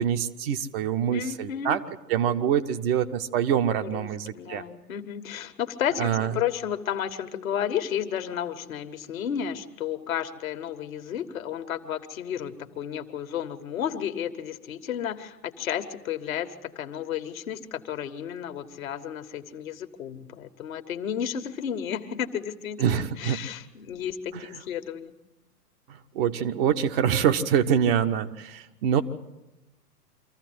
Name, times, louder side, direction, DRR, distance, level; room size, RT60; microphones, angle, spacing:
voice 1, 0.0-1.8 2.1-4.6 6.0-6.3 22.8-23.4 24.3-24.4 26.1-29.0, right 8 dB, 35° right, 7 dB, 1.1 m, -25 dB
voice 2, 1.1-1.8 3.8-4.1 4.3-25.1, left 9 dB, 55° left, 9 dB, 1.7 m, -32 dB
25.0 x 15.0 x 7.9 m, 0.99 s
figure-of-eight pair, 110°, 48 cm